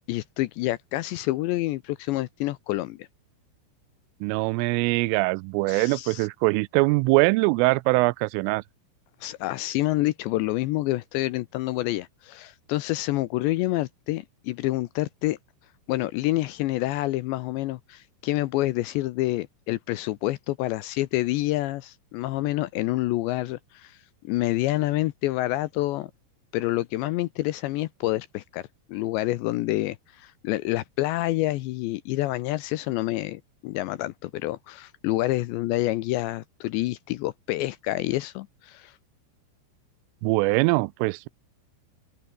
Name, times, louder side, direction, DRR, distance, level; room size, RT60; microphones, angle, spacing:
voice 1, 0.1-3.1 5.7-6.3 9.2-15.4 15.9-24.0 24.2-26.1 26.5-28.6 28.9-38.9, left 17 dB, 80° left, 2.7 m, -28 dB
voice 2, 4.2-8.6 40.2-41.3, right 24 dB, 85° right, 3.1 m, -22 dB
open air
omnidirectional pair, 5.7 m